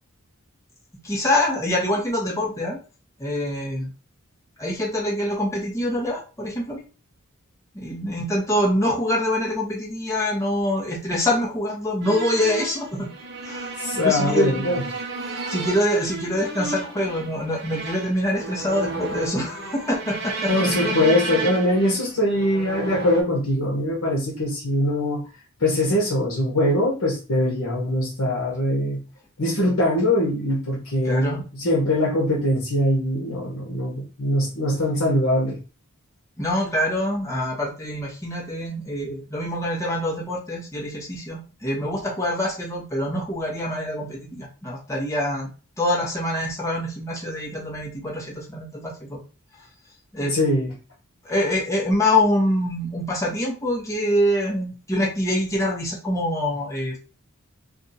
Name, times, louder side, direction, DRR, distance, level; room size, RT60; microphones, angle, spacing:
voice 1, 1.0-2.8 3.2-3.9 4.6-6.8 7.7-13.1 13.4-14.7 15.3-21.0 31.0-31.4 36.4-45.5 45.8-49.2 50.1-50.4 51.2-57.0, left 1 dB, 15° left, -3 dB, 1.0 m, -25 dB
sound 1, 12.0-23.2, right 3 dB, 50° right, 0.7 m, -32 dB
voice 2, 13.8-14.8 20.5-25.2 25.6-29.0 29.4-35.6 50.2-50.7, left 1 dB, 80° left, -3 dB, 1.0 m, -22 dB
2.6 x 2.5 x 4.1 m, 0.33 s
head